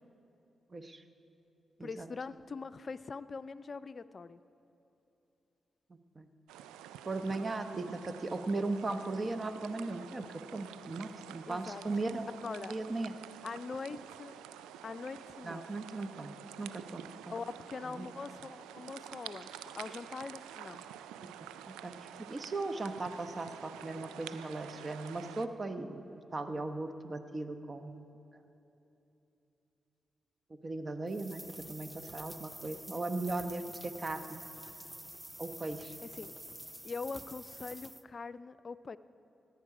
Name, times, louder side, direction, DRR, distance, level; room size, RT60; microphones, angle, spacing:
voice 1, 0.7-1.0 1.8-2.1 6.1-6.3 7.0-12.3 12.7-13.2 15.4-16.3 16.6-17.3 17.8-18.1 21.2-21.3 21.7-28.0 30.6-31.4 31.7-34.4 35.4-35.9, right 2 dB, 40° right, 9 dB, 0.9 m, -38 dB
voice 2, 1.8-4.4 11.5-11.8 12.4-12.7 13.4-14.4 14.8-15.7 17.3-20.8 36.0-36.3 36.8-39.0, left 4 dB, 50° left, 15 dB, 0.4 m, -42 dB
sound 1, 6.5-25.5, right 10 dB, 90° right, 0.3 m, -49 dB
sound 2, 31.1-38.0, right 1 dB, 10° right, 0.5 m, -48 dB
17.0 x 9.6 x 4.8 m, 2.9 s
supercardioid pair, 40°, 0 cm